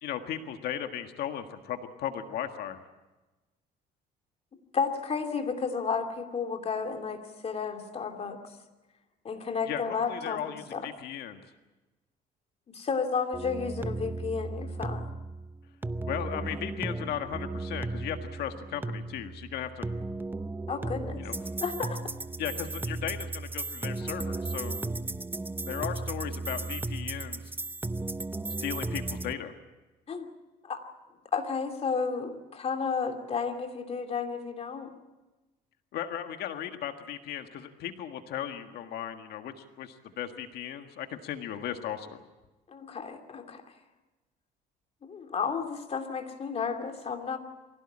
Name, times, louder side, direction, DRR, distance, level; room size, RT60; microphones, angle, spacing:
voice 1, 0.0-2.8 9.7-11.4 16.1-19.9 21.2-21.3 22.4-24.8 25.7-27.4 28.6-29.5 35.9-42.2, left 10 dB, 70° left, 6 dB, 1.7 m, -36 dB
voice 2, 4.7-8.4 9.2-10.9 12.7-15.0 20.7-21.2 21.6-22.0 30.1-30.3 30.6-30.8 31.3-34.9 42.7-43.6 45.0-47.4, left 5 dB, 40° left, 5 dB, 2.8 m, -32 dB
sound 1, 13.3-29.3, right 2 dB, 10° right, 0.7 m, -35 dB
23.5 x 16.5 x 8.7 m, 1.1 s
cardioid pair, 110°, 17 cm